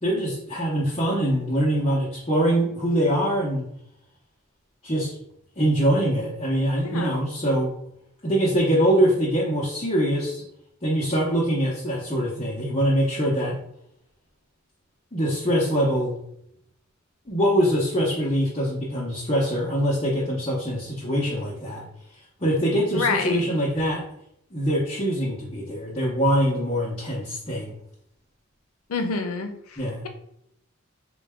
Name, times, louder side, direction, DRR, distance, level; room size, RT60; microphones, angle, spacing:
voice 1, 0.0-3.6 4.8-5.2 5.6-7.7 8.2-10.4 10.8-13.6 15.1-16.2 17.3-21.8 22.4-24.0 24.5-27.8 29.8-30.1, equal, 25° left, -5 dB, 0.7 m, -23 dB
voice 2, 6.8-7.2 22.9-23.4 28.9-30.1, left 4 dB, 85° left, 6 dB, 0.5 m, -28 dB
3.9 x 2.2 x 3.4 m, 0.74 s
head